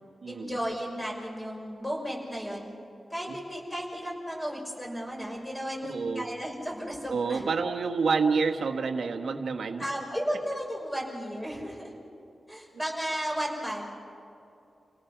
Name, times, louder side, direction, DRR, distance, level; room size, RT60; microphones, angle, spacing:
voice 1, 0.3-2.7 3.1-7.4 9.8-12.0 12.5-14.0, equal, 10° left, -1 dB, 5.9 m, -34 dB
voice 2, 5.9-6.3 7.1-9.9, right 5 dB, 85° right, 5 dB, 1.5 m, -28 dB
29.0 x 18.0 x 6.1 m, 2.7 s
wide cardioid pair, 115°, 0 cm